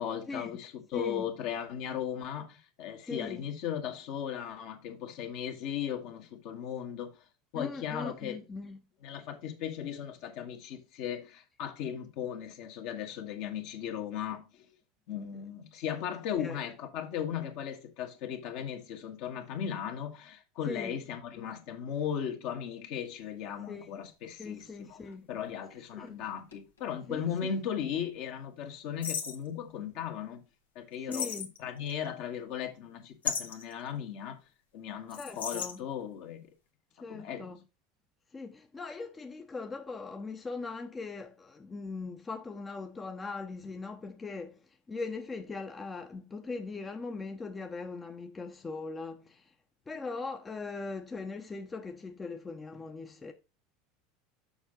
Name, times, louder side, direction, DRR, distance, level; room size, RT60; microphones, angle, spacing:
voice 1, 0.0-7.1 7.5-8.4 9.0-14.7 15.1-25.0 25.3-30.4 30.7-31.3 31.6-34.4 34.7-36.5 37.1-37.5, left 9 dB, 60° left, 1.5 m, -37 dB
voice 2, 0.9-1.3 3.0-3.5 7.5-8.9 16.4-16.6 20.6-21.0 23.7-23.9 24.4-25.3 25.9-26.1 27.1-27.2 31.0-31.5 35.1-35.8 37.0-37.6 38.3-49.5 49.9-53.3, left 4 dB, 20° left, 0.8 m, -40 dB
sound 1, 23.4-23.5 24.4-27.1 27.4-27.5 29.0-29.5 31.1-31.9 33.2-33.7 35.1-35.8, left 7 dB, 85° left, 1.2 m, -36 dB
7.0 x 5.3 x 3.8 m
hypercardioid pair, 80°, 0 cm